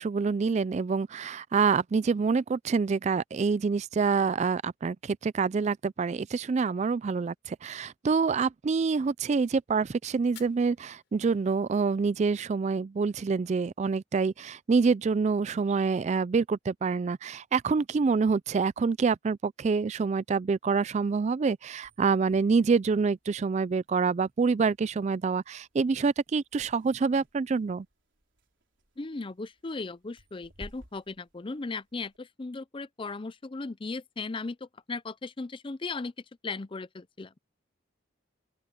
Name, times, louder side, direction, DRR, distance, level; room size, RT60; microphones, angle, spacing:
voice 1, 0.0-27.9, right 5 dB, 35° right, 0.3 m, -26 dB
Fire, 10.2-12.2, left 12 dB, 65° left, 6.7 m, -56 dB
sound 1, 21.7-32.2, equal, 70° right, 4.3 m, -56 dB
voice 2, 29.0-36.1 36.4-37.4, left 3 dB, 25° left, 0.5 m, -37 dB
open air
head